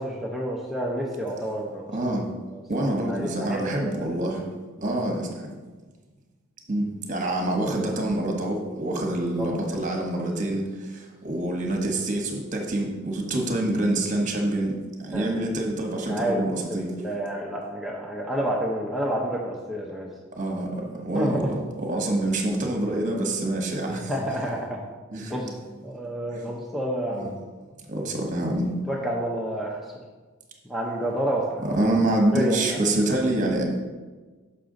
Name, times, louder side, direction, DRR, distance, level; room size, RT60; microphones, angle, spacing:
voice 1, 0.0-1.9 2.5-4.0 9.4-9.8 15.1-15.3 16.1-20.1 21.1-21.6 23.9-24.8 25.3-27.3 28.9-29.8 30.6-31.6 32.3-32.8, right 1 dB, ahead, -4 dB, 0.6 m, -29 dB
voice 2, 1.9-2.3 2.7-4.4 4.8-5.5 6.7-16.9 20.3-24.1 25.1-25.3 26.3-26.5 27.1-27.3 27.9-28.7 31.7-33.6, right 1 dB, 35° right, 1 dB, 1.1 m, -26 dB
6.7 x 5.8 x 3.8 m, 1.3 s
head